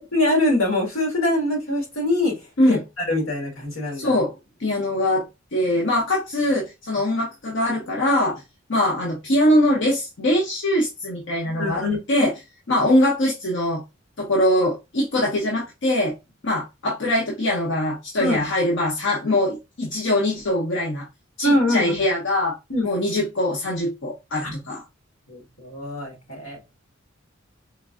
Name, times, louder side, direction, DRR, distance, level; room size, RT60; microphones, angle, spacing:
voice 1, 0.0-2.3 2.7-4.1 11.4-12.3 18.2-18.4 21.4-21.9 22.7-22.9 24.4-24.5 25.3-26.6, left 1 dB, 80° left, 1 dB, 1.6 m, -23 dB
voice 2, 3.9-4.3 4.6-8.4 8.7-12.3 12.7-13.8 14.2-16.1 16.4-21.1 21.4-22.6 22.8-24.8, left 1 dB, 65° left, -2 dB, 0.8 m, -22 dB
4.4 x 2.6 x 2.3 m, 0.24 s
head